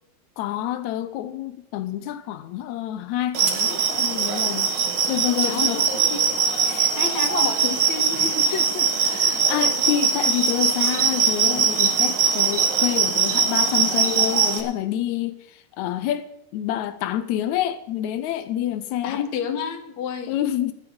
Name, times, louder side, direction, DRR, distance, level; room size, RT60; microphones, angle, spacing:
voice 1, 0.4-4.7 5.1-5.8 6.7-6.8 9.1-19.2 20.3-20.7, left 12 dB, 85° left, 1.6 m, -28 dB
sound 1, 3.3-14.6, right 6 dB, 80° right, 1.0 m, -21 dB
voice 2, 5.4-6.2 6.6-8.9 19.0-20.4, left 7 dB, 60° left, 2.2 m, -30 dB
11.0 x 8.3 x 7.8 m
omnidirectional pair, 4.1 m